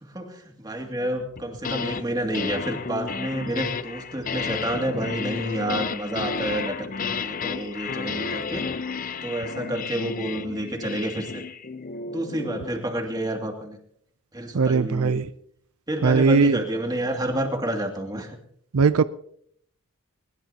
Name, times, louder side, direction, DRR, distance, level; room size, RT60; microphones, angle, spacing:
voice 1, 0.0-8.7 9.2-11.4 12.1-13.8 14.3-15.2 15.9-18.3, right 1 dB, 20° right, 2 dB, 2.4 m, -29 dB
sound 1, 1.4-2.0 2.3-12.7, left 5 dB, 40° left, 0.6 m, -32 dB
voice 2, 14.5-15.3 16.0-16.6 18.7-19.0, right 4 dB, 75° right, 14 dB, 0.5 m, -19 dB
21.0 x 20.5 x 2.9 m, 0.67 s
head